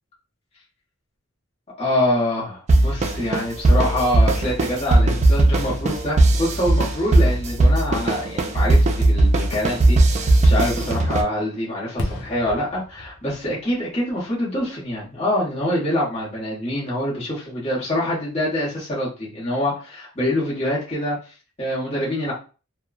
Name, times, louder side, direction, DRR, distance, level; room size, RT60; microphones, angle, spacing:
voice 1, 1.8-22.3, left 1 dB, 30° left, -6 dB, 1.0 m, -25 dB
sound 1, 2.7-11.2, right 2 dB, 30° right, 0.3 m, -18 dB
Fireworks, 9.4-15.2 15.6-15.7, left 1 dB, 80° left, 0.5 m, -37 dB
2.9 x 2.1 x 2.3 m, 0.35 s
head